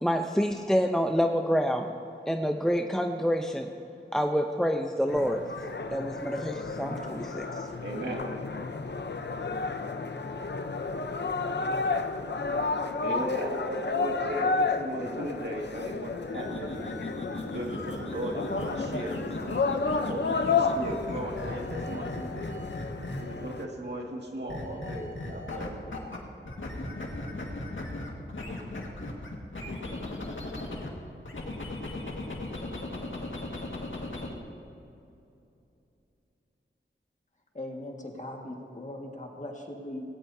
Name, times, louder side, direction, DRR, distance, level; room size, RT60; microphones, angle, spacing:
voice 1, 0.0-1.9 2.3-3.7 4.1-5.4 5.9-7.7, equal, 5° left, 4 dB, 0.7 m, -27 dB
sound 1, 5.1-23.6, left 4 dB, 65° left, 0.8 m, -32 dB
voice 2, 7.8-8.3 13.0-16.9 17.4-22.5 22.9-25.7, right 1 dB, 60° right, -1 dB, 2.1 m, -37 dB
sound 2, 16.3-23.5 24.5-26.2 26.5-30.9 31.2-34.3, left 2 dB, 90° left, 1.9 m, -37 dB
voice 3, 37.5-40.1, left 1 dB, 40° left, 1 dB, 1.8 m, -39 dB
18.5 x 17.5 x 2.8 m, 2.8 s
wide cardioid pair, 70°, 19 cm